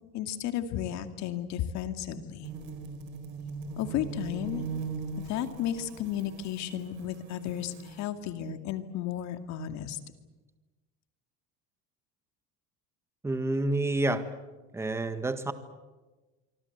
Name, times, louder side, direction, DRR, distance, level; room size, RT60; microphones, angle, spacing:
voice 1, 0.1-2.5 3.8-4.6 5.2-10.0, left 10 dB, 55° left, 8 dB, 2.3 m, -33 dB
sound 1, 2.4-8.0, right 5 dB, 70° right, 4.2 m, -40 dB
voice 2, 13.2-14.3 14.7-15.5, right 2 dB, 10° right, 10 dB, 1.6 m, -28 dB
26.0 x 25.0 x 8.1 m, 1.2 s
cardioid pair, 145°, 32 cm